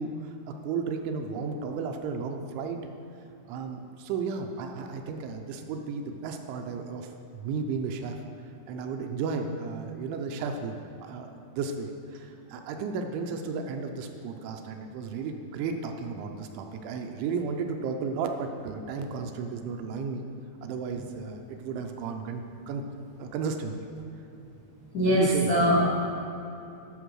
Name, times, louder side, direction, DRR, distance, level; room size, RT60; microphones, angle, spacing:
voice 1, 0.0-2.8 3.5-8.2 8.7-20.2 20.6-22.8 23.2-23.7 25.1-25.5, right 5 dB, 80° right, 4 dB, 3.0 m, -34 dB
voice 2, 24.9-26.1, equal, 55° left, -8 dB, 1.0 m, -23 dB
12.0 x 5.9 x 6.2 m, 2.9 s
omnidirectional pair, 5.6 m